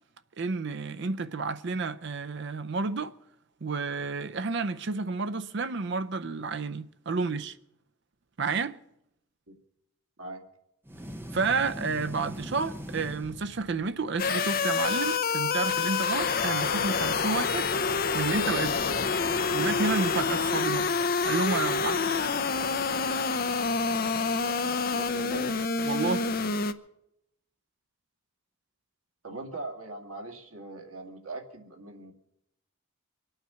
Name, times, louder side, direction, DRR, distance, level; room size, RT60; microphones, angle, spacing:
voice 1, 0.4-3.1 3.6-7.5 8.4-8.7 11.3-17.7 18.1-18.8 19.5-20.9 21.2-22.3 25.8-26.2, right 4 dB, 55° right, 0.6 m, -30 dB
sound 1, 10.9-14.0, equal, 10° right, 0.8 m, -41 dB
sound 2, 14.2-26.7, left 5 dB, 45° left, 0.7 m, -27 dB
voice 2, 24.4-25.5 29.2-32.1, right 2 dB, 90° right, 2.4 m, -41 dB
25.0 x 8.9 x 5.7 m
head